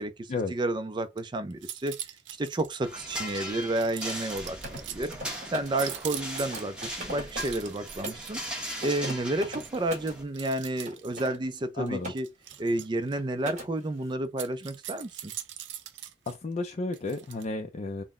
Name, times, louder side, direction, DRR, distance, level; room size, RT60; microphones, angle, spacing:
voice 1, 0.0-1.9 2.4-5.1 5.5-8.4 8.8-12.3 12.6-15.3, right 1 dB, 25° right, 0.4 m, -31 dB
sound 1, 1.0-1.2 1.5-2.8 3.3-5.1 5.7-6.8 7.2-9.1 9.6-9.8 10.3-11.4 12.2-13.2 14.2-16.3 16.9-17.4, right 11 dB, 80° right, 0.5 m, -42 dB
sound 2, 2.8-10.2, equal, 5° right, 1.0 m, -39 dB
Mechanisms, 4.3-8.3 8.7-10.2 10.8-12.2 12.5-12.8 13.1-13.7, right 1 dB, 45° right, 1.6 m, -41 dB
voice 2, 11.7-12.1 16.3-18.0, left 3 dB, 35° left, 0.4 m, -32 dB
3.9 x 2.1 x 3.5 m
head